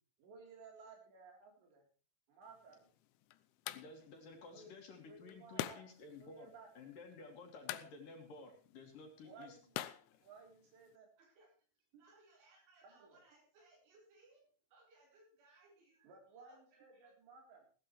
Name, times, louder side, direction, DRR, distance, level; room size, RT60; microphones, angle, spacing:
voice 1, 0.2-1.9 2.3-2.9 4.5-4.7 5.1-5.8 6.2-6.7 9.2-9.8 10.2-11.1 12.8-13.2 16.0-17.7, right 4 dB, 70° right, 1 dB, 5.9 m, -58 dB
sound 1, 2.4-11.0, left 14 dB, 85° left, 3.1 m, -49 dB
voice 2, 3.7-9.6 10.1-10.2, left 3 dB, 50° left, 2 dB, 3.5 m, -54 dB
voice 3, 11.2-11.5 11.9-17.1, right 3 dB, 90° right, -4 dB, 7.0 m, -67 dB
17.5 x 12.5 x 3.2 m, 0.40 s
omnidirectional pair, 5.4 m